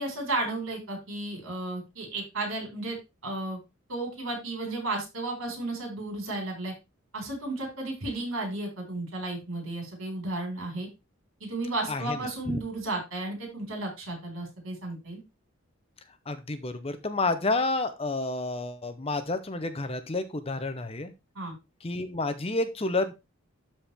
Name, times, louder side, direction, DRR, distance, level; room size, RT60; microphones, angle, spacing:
voice 1, 0.0-3.0 3.2-3.6 3.9-6.7 7.1-10.9 11.4-15.2 21.3-21.5, right 2 dB, 70° right, 1 dB, 4.9 m, -33 dB
voice 2, 16.3-21.1 21.8-23.1, left 2 dB, 25° left, 10 dB, 0.7 m, -30 dB
12.5 x 4.4 x 3.5 m, 0.25 s
head